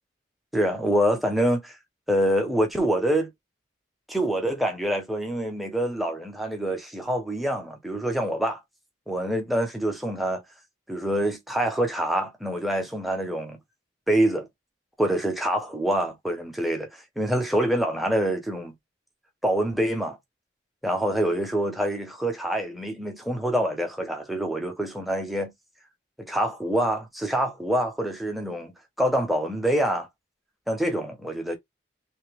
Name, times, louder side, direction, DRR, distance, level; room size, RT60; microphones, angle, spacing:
voice 1, 0.5-1.8 2.1-3.3 4.1-8.6 9.1-10.4 10.9-13.6 14.1-14.5 15.0-18.7 19.4-20.2 20.8-25.5 26.2-28.7 29.0-30.1 30.7-31.6, right 1 dB, ahead, 1.0 m, -26 dB
3.5 x 2.9 x 3.3 m
head